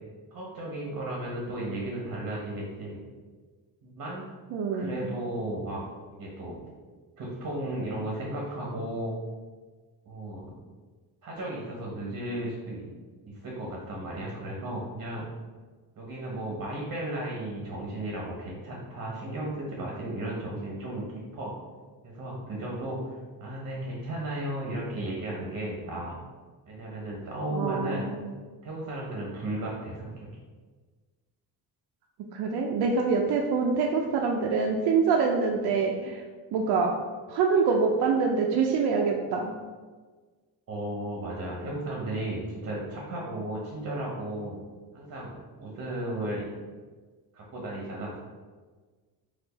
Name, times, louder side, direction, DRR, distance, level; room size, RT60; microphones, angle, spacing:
voice 1, 0.3-3.0 3.8-4.3 4.7-5.8 6.1-6.6 7.2-9.1 10.1-10.5 11.2-12.8 13.3-15.3 16.0-21.1 21.3-21.5 22.0-26.2 26.7-28.0 28.6-30.3 40.7-44.6 44.9-46.5 47.3-48.2, right 1 dB, 50° right, -3 dB, 0.9 m, -34 dB
voice 2, 4.5-5.3 27.5-28.3 32.3-36.2 36.5-36.9 37.3-39.5, right 5 dB, 85° right, 0 dB, 0.5 m, -25 dB
4.5 x 2.5 x 3.9 m, 1.4 s
cardioid pair, 155°, 38 cm